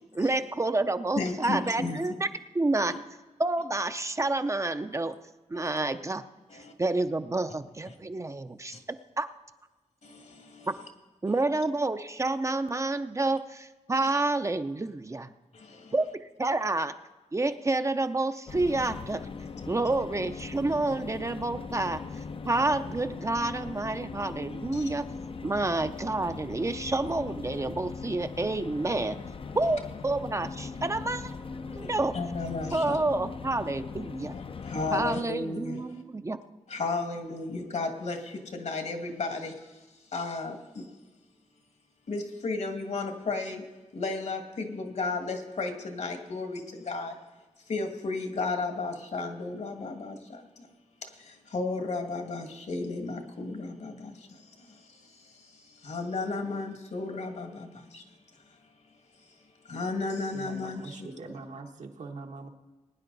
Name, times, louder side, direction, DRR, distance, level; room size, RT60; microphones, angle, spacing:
voice 1, 0.1-2.3 2.5-2.9 3.4-5.1 5.5-6.2 6.8-8.7 9.2-9.3 11.2-15.3 15.9-16.1 16.4-16.9 17.3-19.2 19.7-22.0 22.5-25.0 25.4-29.2 29.5-31.3 31.7-32.1 32.7-34.3 34.9-36.4, right 2 dB, 25° right, 9 dB, 0.5 m, -29 dB
voice 2, 1.2-2.0 2.8-3.0 5.5-5.7 6.5-6.7 7.9-8.0 10.0-10.7 14.0-14.1 15.5-15.9 24.7-24.8 31.8-33.0 34.3-36.0 36.7-39.7 40.1-40.9 42.1-43.6 43.9-47.2 47.7-50.7 51.1-58.0 59.7-61.3, left 3 dB, 70° left, 5 dB, 1.9 m, -34 dB
sound 1, 18.5-35.2, left 4 dB, 45° left, 0.5 m, -40 dB
voice 3, 60.3-62.5, right 3 dB, 75° right, 3 dB, 1.4 m, -42 dB
20.5 x 9.8 x 4.0 m, 1.2 s
wide cardioid pair, 90°, 12 cm